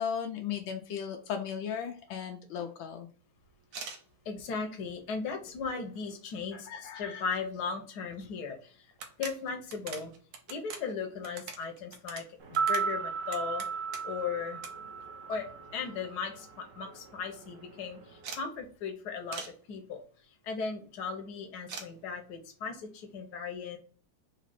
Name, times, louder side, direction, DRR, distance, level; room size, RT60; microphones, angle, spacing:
voice 1, 0.0-3.1 6.5-7.2, left 8 dB, 80° left, 4 dB, 1.4 m, -36 dB
sound 1, 3.6-4.0 4.7-4.8 5.3-6.0 6.3-6.4 6.7-6.8 8.1-8.2 8.5-8.6 8.9-14.2 14.6-14.7 15.0-15.8 16.1-16.2 16.5-16.6 16.8-17.2 18.2-18.5 19.3-19.6 21.7-21.9, right 5 dB, 70° right, 1.5 m, -44 dB
voice 2, 4.2-8.9 9.2-10.1 10.5-12.2 12.5-13.6 14.0-14.6 15.3-19.4 19.7-20.0 20.4-23.8, left 5 dB, 60° left, 4 dB, 1.3 m, -37 dB
sound 2, 12.4-16.6 16.8-17.0, right 6 dB, 55° right, 1.0 m, -34 dB
4.1 x 2.9 x 4.2 m, 0.43 s
omnidirectional pair, 2.2 m